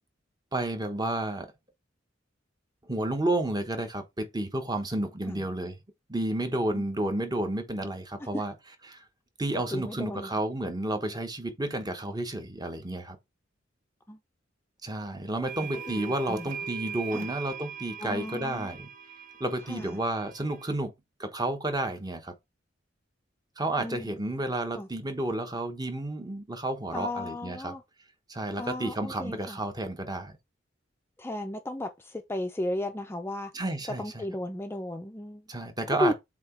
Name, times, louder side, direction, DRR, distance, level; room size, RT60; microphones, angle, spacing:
voice 1, 0.5-1.5 2.8-5.8 6.1-8.5 8.9-9.0 9.4-13.2 14.8-18.9 19.4-20.9 21.2-22.3 23.6-27.7 28.3-30.4 33.5-34.2 35.5-36.1, right 1 dB, 20° right, 1.0 m, -31 dB
voice 2, 9.7-10.4 14.1-14.2 15.8-16.5 17.1-17.3 18.0-18.8 19.7-20.0 23.8-24.1 24.7-24.9 26.9-27.8 28.6-29.6 31.2-33.5 33.9-35.4 36.0-36.1, left 1 dB, 15° left, 0.5 m, -34 dB
sound 1, 15.5-20.7, right 7 dB, 45° right, 0.9 m, -41 dB
7.5 x 2.9 x 4.3 m
head